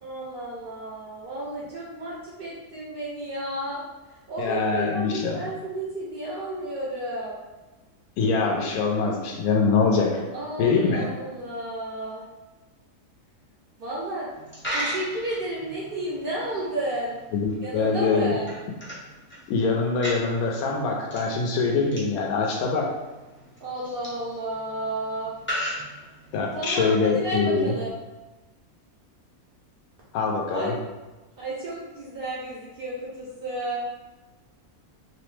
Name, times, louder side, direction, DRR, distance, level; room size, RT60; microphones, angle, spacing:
voice 1, 0.0-7.4 10.3-12.2 13.8-14.3 14.7-17.2 17.6-18.5 23.6-25.3 26.5-27.9 30.5-30.7 31.4-33.8, right 1 dB, 65° right, -5 dB, 0.5 m, -32 dB
voice 2, 4.4-5.4 8.2-10.2 10.6-11.0 17.3-18.3 19.5-22.9 26.3-27.7 30.1-30.7, left 4 dB, 90° left, 0 dB, 1.1 m, -23 dB
Coin (dropping), 14.3-26.6, equal, 20° left, 0.3 m, -38 dB
2.9 x 2.0 x 3.1 m, 1.2 s
omnidirectional pair, 1.5 m